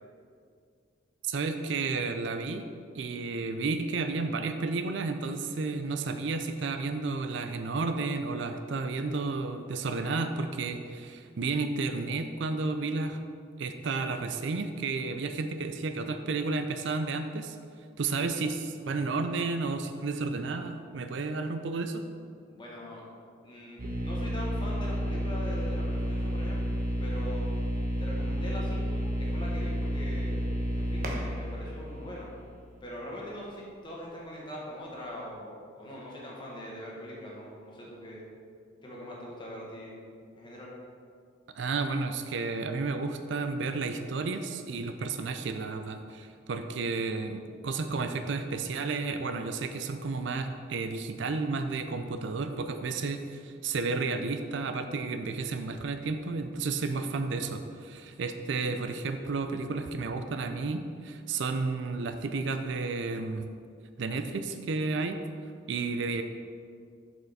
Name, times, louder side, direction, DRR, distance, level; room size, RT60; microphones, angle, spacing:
voice 1, 1.2-2.7 2.9-13.2 13.6-17.6 18.0-22.0 41.5-63.5 64.0-65.2 65.7-66.2, right 3 dB, 65° right, 8 dB, 0.4 m, -32 dB
voice 2, 22.5-23.0 23.4-26.7 27.0-27.5 28.0-32.3 32.8-38.3 38.8-40.0 40.4-40.7, equal, 25° left, -4 dB, 1.5 m, -42 dB
sound 1, 23.8-32.7, equal, 45° right, 1.1 m, -31 dB
7.5 x 5.6 x 4.1 m, 2.3 s
head